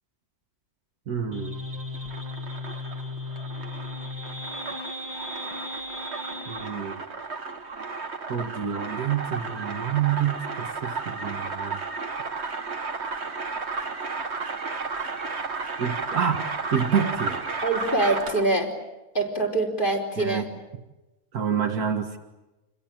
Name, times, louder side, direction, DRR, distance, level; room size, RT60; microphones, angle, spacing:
voice 1, 1.1-1.6 6.5-7.0 8.3-11.8 15.8-17.4 20.2-20.4 21.3-22.2, right 8 dB, 85° right, 6 dB, 2.2 m, -28 dB
sound 1, 1.3-6.7, left 2 dB, 25° right, 2.4 m, -36 dB
sound 2, 1.9-18.6, right 4 dB, 45° right, 1.9 m, -33 dB
voice 2, 17.6-18.7 19.1-20.5, right 2 dB, 35° left, 0 dB, 4.9 m, -24 dB
29.0 x 22.0 x 9.0 m, 1.1 s
omnidirectional pair, 1.6 m